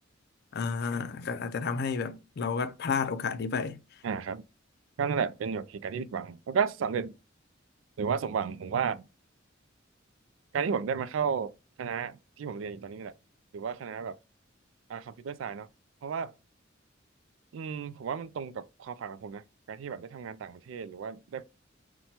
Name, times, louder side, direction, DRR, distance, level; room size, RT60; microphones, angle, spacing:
voice 1, 0.5-3.8, left 5 dB, 55° left, 0.4 m, -31 dB
voice 2, 4.0-4.4 5.0-7.1 8.0-9.0 10.5-11.5 11.8-12.1 12.4-13.1 13.5-14.2 14.9-15.7 16.0-16.3 17.5-19.4 19.7-21.4, right 6 dB, 80° right, 0.3 m, -33 dB
5.8 x 2.2 x 2.8 m
head